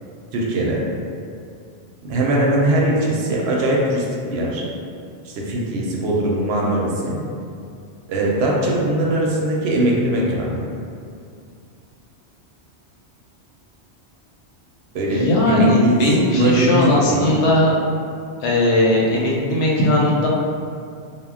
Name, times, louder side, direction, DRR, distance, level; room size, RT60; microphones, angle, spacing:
voice 1, 0.3-0.8 2.0-4.0 4.3-4.6 5.2-7.2 8.1-10.5 14.9-17.3, right 1 dB, 70° right, -3 dB, 0.8 m, -20 dB
voice 2, 15.1-17.8 18.4-20.3, left 1 dB, 85° left, -4 dB, 0.9 m, -18 dB
2.1 x 2.0 x 3.5 m, 2.4 s
omnidirectional pair, 1.2 m